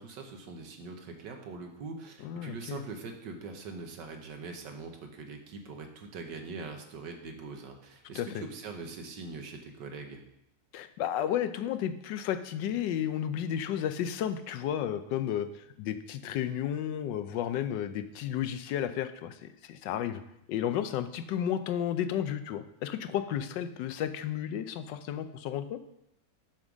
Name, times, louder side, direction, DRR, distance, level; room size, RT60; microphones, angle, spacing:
voice 1, 0.0-10.2, right 4 dB, 75° right, 4 dB, 1.7 m, -42 dB
voice 2, 2.2-2.8 8.1-8.3 10.7-15.5 15.8-20.2 20.5-25.8, left 10 dB, 80° left, 11 dB, 1.3 m, -32 dB
7.4 x 5.3 x 6.1 m, 0.81 s
omnidirectional pair, 1.9 m